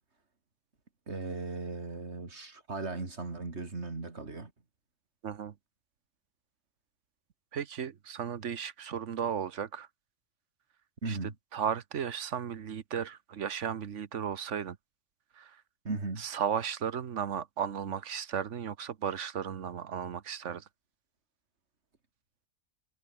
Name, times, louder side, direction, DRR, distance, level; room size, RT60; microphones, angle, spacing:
voice 1, 1.1-4.5 11.0-11.3 15.8-16.2, right 3 dB, 65° right, 3.2 m, -37 dB
voice 2, 5.2-5.5 7.5-9.9 11.1-11.2 11.5-14.8 15.4-15.6 16.2-20.6, right 8 dB, 80° right, 1.4 m, -35 dB
omnidirectional pair, 1.2 m